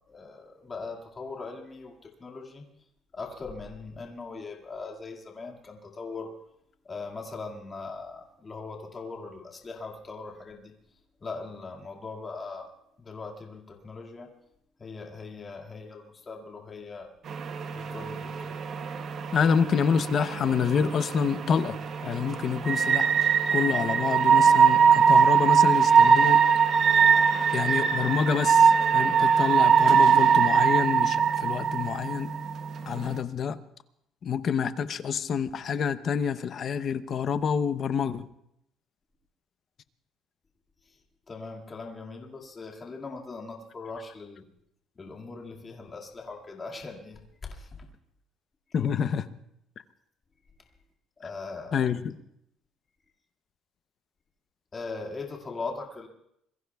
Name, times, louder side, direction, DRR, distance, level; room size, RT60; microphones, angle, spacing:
voice 1, 0.1-2.6 3.1-6.3 6.8-10.7 11.2-12.7 13.0-14.3 14.8-17.1 17.7-18.6 41.3-44.5 45.0-47.9 51.2-51.8 54.7-56.1, left 4 dB, 25° left, 0 dB, 2.1 m, -40 dB
sound 1, 17.3-33.2, right 6 dB, 40° right, 0.8 m, -22 dB
voice 2, 19.3-23.1 23.5-26.4 27.5-32.3 32.9-33.6 34.2-38.3 48.7-49.3 51.7-52.2, left 7 dB, 40° left, 12 dB, 0.7 m, -27 dB
26.5 x 22.0 x 2.3 m, 0.77 s
cardioid pair, 155°, 0 cm